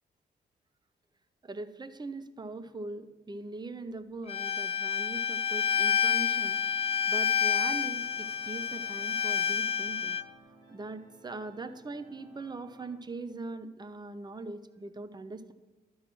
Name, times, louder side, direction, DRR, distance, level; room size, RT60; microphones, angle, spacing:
voice 1, 1.4-6.6 7.1-10.2 10.7-15.5, right 2 dB, 25° right, 11 dB, 0.7 m, -41 dB
Bowed string instrument, 4.3-10.2, left 8 dB, 35° left, 0.4 m, -29 dB
sound 1, 5.5-13.0, right 2 dB, 80° right, 2.7 m, -58 dB
12.0 x 5.6 x 6.1 m, 1.2 s
supercardioid pair, 50°, 18 cm